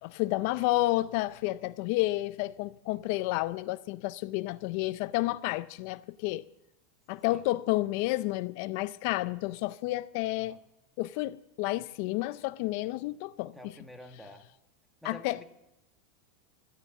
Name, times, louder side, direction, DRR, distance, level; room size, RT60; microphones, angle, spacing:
voice 1, 0.0-6.4 7.1-10.6 11.0-13.6 15.0-15.4, left 18 dB, 55° left, 0.4 m, -30 dB
voice 2, 13.5-14.5 15.0-15.4, left 1 dB, ahead, 1.3 m, -49 dB
13.0 x 10.0 x 7.3 m
supercardioid pair, 140°, 0 cm